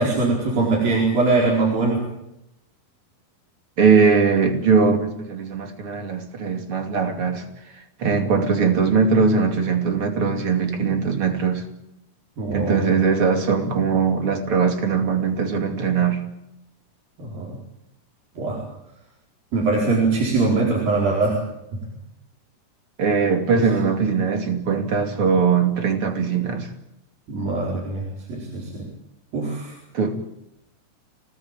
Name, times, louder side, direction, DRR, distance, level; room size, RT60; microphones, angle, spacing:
voice 1, 0.0-2.0 12.4-12.8 17.2-17.5 18.4-18.6 19.5-21.4 23.5-23.6 27.3-28.9 29.3-29.7, right 3 dB, 70° right, -3 dB, 6.4 m, -22 dB
voice 2, 3.8-7.4 7.7-11.6 12.5-16.2 23.0-26.7 29.9-30.2, right 5 dB, 40° right, 5 dB, 3.1 m, -20 dB
26.0 x 18.5 x 9.0 m, 0.88 s
omnidirectional pair, 4.2 m